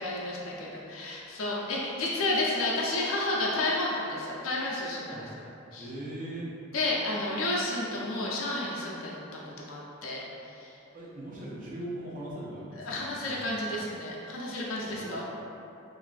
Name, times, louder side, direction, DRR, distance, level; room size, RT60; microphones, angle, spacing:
voice 1, 0.0-5.2 5.7-5.9 6.7-10.2 10.5-10.7 12.8-15.2, left 2 dB, 85° left, -4 dB, 0.4 m, -31 dB
voice 2, 5.8-6.5 10.9-13.6 14.9-15.2, right 1 dB, 40° right, -6 dB, 0.5 m, -40 dB
2.9 x 2.5 x 2.4 m, 2.8 s
head